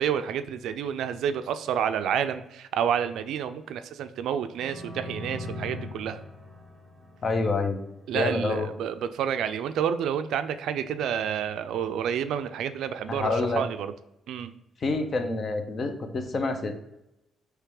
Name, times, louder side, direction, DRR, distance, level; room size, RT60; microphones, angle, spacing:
voice 1, 0.0-6.2 8.1-13.9 14.3-14.5, right 8 dB, 80° right, 10 dB, 0.3 m, -29 dB
sound 1, 4.5-8.2, left 1 dB, 10° right, 1.1 m, -40 dB
voice 2, 7.2-7.8 8.1-8.7 13.1-13.6 14.8-16.7, left 3 dB, 45° left, 6 dB, 0.7 m, -27 dB
3.4 x 3.2 x 4.7 m, 0.89 s
cardioid pair, 90°, 0 cm